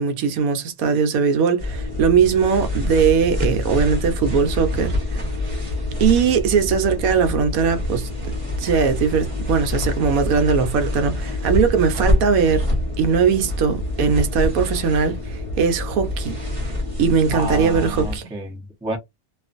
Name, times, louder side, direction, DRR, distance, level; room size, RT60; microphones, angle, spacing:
voice 1, 0.0-5.2 6.0-8.1 8.6-12.7 13.0-16.3 17.0-18.3, right 6 dB, 75° right, 1.0 m, -20 dB
sound 1, 1.6-18.2, left 1 dB, 25° right, 0.9 m, -26 dB
voice 2, 17.3-19.0, right 1 dB, 10° right, 0.4 m, -30 dB
2.4 x 2.4 x 2.4 m
omnidirectional pair, 1.5 m